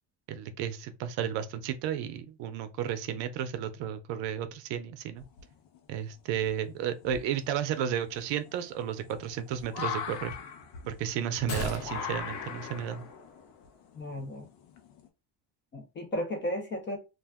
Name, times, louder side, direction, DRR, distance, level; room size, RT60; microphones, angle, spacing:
voice 1, 0.3-5.2 5.9-10.3 10.9-13.1, right 9 dB, 60° right, 0.6 m, -33 dB
sound 1, 5.2-5.8 6.4-6.5 7.0-15.1, left 7 dB, 85° left, 0.8 m, -40 dB
sound 2, 11.5-13.8 14.1-14.2, left 2 dB, 50° left, 0.8 m, -40 dB
voice 2, 13.9-14.5 15.7-17.0, equal, 25° left, 0.4 m, -34 dB
2.5 x 2.1 x 3.4 m
cardioid pair, 145°, 48 cm